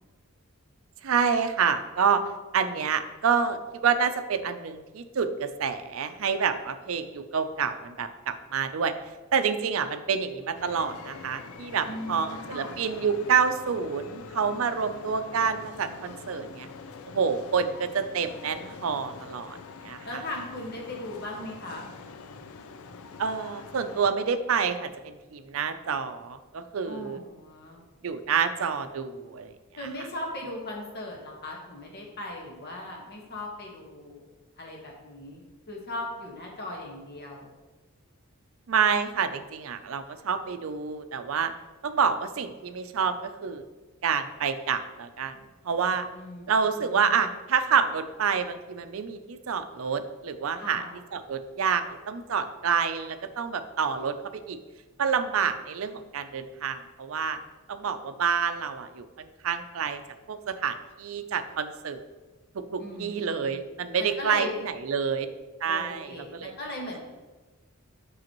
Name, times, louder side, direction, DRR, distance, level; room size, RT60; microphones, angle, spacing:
voice 1, 1.0-2.2 2.5-8.9 9.3-16.7 17.1-19.6 19.8-20.2 23.2-27.2 28.0-29.5 38.7-41.5 41.8-43.6 44.0-45.4 45.6-46.1 46.5-50.8 51.1-54.1 54.5-54.6 55.0-57.4 57.7-60.0 60.3-62.0 62.7-65.3 65.6-66.5, right 6 dB, 70° right, 10 dB, 0.5 m, -28 dB
sound 1, 10.5-24.1, left 4 dB, 80° left, 0.4 m, -44 dB
voice 2, 11.9-12.8 20.0-21.9 26.9-27.8 29.8-34.3 34.6-37.5 46.1-47.1 50.6-50.9 62.8-63.6 64.0-64.6 65.6-67.0, left 1 dB, 50° left, -1 dB, 1.5 m, -38 dB
7.6 x 6.2 x 3.0 m, 1.2 s
head